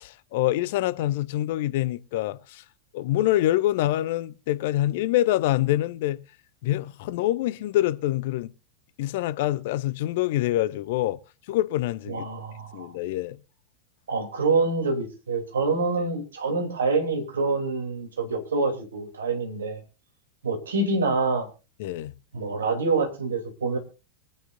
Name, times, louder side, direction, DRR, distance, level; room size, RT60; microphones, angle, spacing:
voice 1, 0.0-2.6 2.9-6.2 6.6-8.5 9.0-11.2 11.5-12.2 12.7-13.4 21.8-22.1, left 14 dB, 50° left, 0.7 m, -25 dB
voice 2, 12.1-12.9 14.1-19.8 20.4-21.5 22.3-23.8, right 3 dB, 65° right, 3.1 m, -26 dB
24.5 x 9.0 x 2.6 m
figure-of-eight pair, 90°, 0 cm